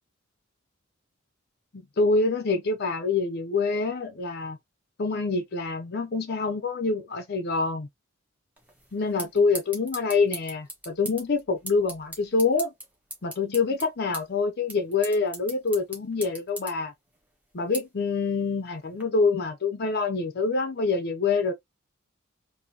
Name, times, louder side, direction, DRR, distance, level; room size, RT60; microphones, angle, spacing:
voice 1, 2.0-4.6 5.0-7.9 8.9-12.7 13.2-16.9 17.5-21.5, left 4 dB, 50° left, 0.6 m, -26 dB
sound 1, 8.6-19.0, right 1 dB, 10° right, 1.3 m, -42 dB
3.8 x 2.6 x 2.8 m
head